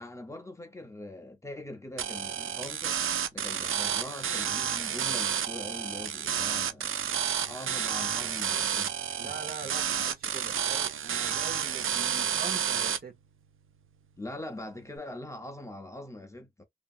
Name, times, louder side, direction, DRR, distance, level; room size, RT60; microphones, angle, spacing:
voice 1, 0.0-3.0 3.3-6.9 7.4-9.0 9.2-9.3 9.6-9.7 14.2-16.6, left 1 dB, 15° left, 0.6 m, -42 dB
sound 1, 2.0-13.0, right 8 dB, 90° right, 0.4 m, -30 dB
voice 2, 9.2-13.1, right 5 dB, 45° right, 0.8 m, -42 dB
2.9 x 2.6 x 2.4 m
wide cardioid pair, 150°, 20 cm